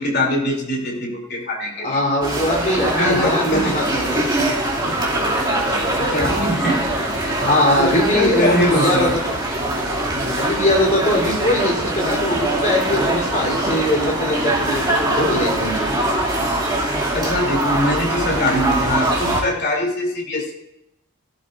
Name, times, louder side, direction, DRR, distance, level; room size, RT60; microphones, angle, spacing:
voice 1, 0.0-2.0 2.9-3.9 5.7-6.9 7.8-9.2 15.9-16.1 17.1-20.5, left 1 dB, 50° left, 0 dB, 3.2 m, -22 dB
voice 2, 1.8-4.3 7.4-9.4 10.4-15.9, left 1 dB, 35° left, -3 dB, 3.6 m, -21 dB
sound 1, 2.2-19.4, right 1 dB, 20° right, 2.6 m, -22 dB
17.0 x 12.0 x 2.6 m, 0.83 s
head